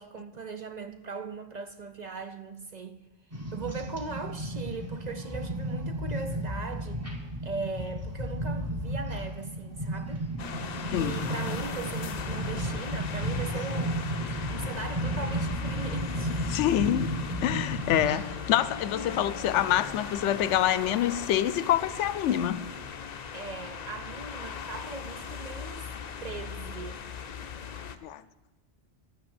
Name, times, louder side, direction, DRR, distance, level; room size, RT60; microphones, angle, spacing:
voice 1, 0.0-3.0 3.3-7.1 7.4-10.2 10.9-14.0 14.5-16.4 23.3-25.9 26.2-27.0, right 4 dB, 50° right, 0.6 m, -39 dB
sound 1, 3.3-18.2, right 1 dB, 15° right, 1.4 m, -33 dB
sound 2, 10.4-28.0, left 6 dB, 45° left, 0.6 m, -38 dB
voice 2, 16.5-17.1 17.4-22.7 28.0-28.2, left 11 dB, 85° left, 0.9 m, -26 dB
12.5 x 6.2 x 7.9 m
omnidirectional pair, 1.2 m